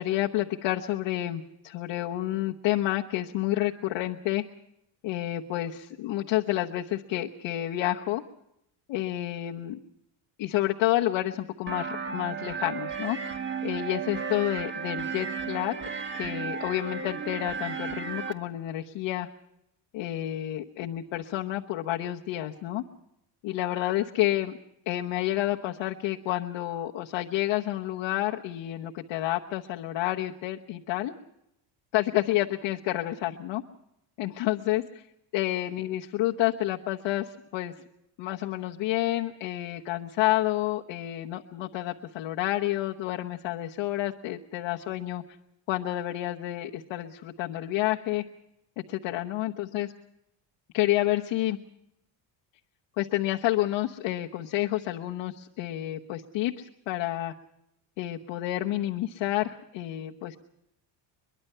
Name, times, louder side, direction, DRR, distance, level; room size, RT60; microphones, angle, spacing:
voice 1, 0.0-4.4 5.0-8.2 8.9-9.8 10.4-13.2 13.6-15.7 16.1-19.3 19.9-22.8 23.4-24.6 24.9-31.1 31.9-33.6 34.2-35.0 35.3-37.7 38.2-45.2 45.7-48.2 48.9-49.9 50.7-51.6 53.0-57.3 58.0-60.4, left 15 dB, 70° left, 1 dB, 1.1 m, -29 dB
sound 1, 11.7-18.3, right 6 dB, 25° right, 1.6 m, -34 dB
23.0 x 22.0 x 5.6 m, 0.81 s
cardioid pair, 120°, 48 cm